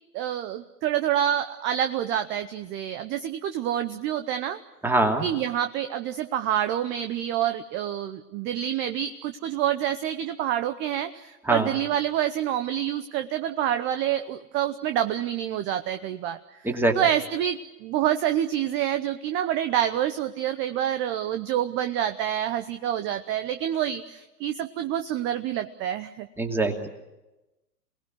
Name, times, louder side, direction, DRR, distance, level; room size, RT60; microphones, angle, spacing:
voice 1, 0.1-4.6 5.2-16.4 16.6-26.3, right 11 dB, 25° right, 10 dB, 0.8 m, -27 dB
voice 2, 4.8-5.3 11.5-11.7 16.6-17.0 26.4-26.9, right 2 dB, 5° right, 3 dB, 2.7 m, -23 dB
27.5 x 19.5 x 9.6 m, 1.0 s
hypercardioid pair, 120°, 46 cm